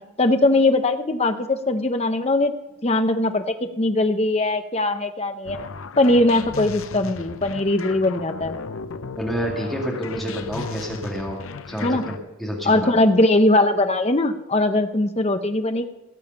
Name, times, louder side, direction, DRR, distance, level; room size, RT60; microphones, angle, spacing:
voice 1, 0.2-2.5 2.8-5.6 6.0-8.6 11.8-12.0 12.6-15.8, left 2 dB, 30° left, 8 dB, 0.7 m, -20 dB
sound 1, 5.5-12.2, left 4 dB, 65° left, 0.6 m, -36 dB
voice 2, 9.2-11.4 11.7-12.9, equal, ahead, -3 dB, 2.2 m, -28 dB
18.0 x 7.1 x 5.9 m, 1.0 s
head